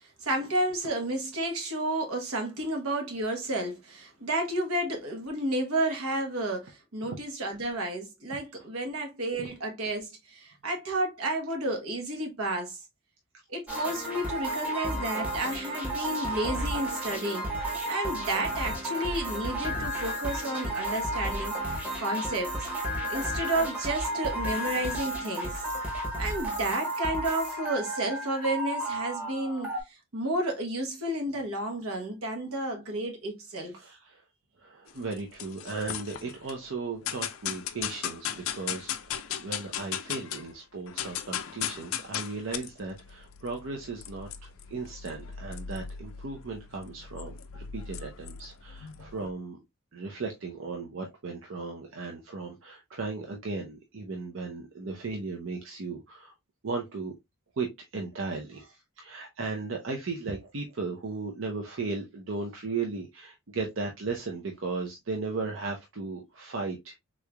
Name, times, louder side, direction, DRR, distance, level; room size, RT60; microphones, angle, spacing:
voice 1, 0.2-12.8 13.5-17.4 17.9-22.7 23.1-25.5 26.2-29.7 30.1-33.7, right 1 dB, 80° right, 1.1 m, -31 dB
sound 1, 13.7-29.8, right 1 dB, 5° right, 0.9 m, -32 dB
voice 2, 33.7-34.2 34.6-49.6 49.9-56.3 56.6-57.1 57.5-67.0, right 3 dB, 60° right, 0.6 m, -36 dB
sound 2, 34.9-36.5 37.1-40.5 40.8-49.3, left 9 dB, 70° left, 0.4 m, -37 dB
3.6 x 3.2 x 2.2 m
head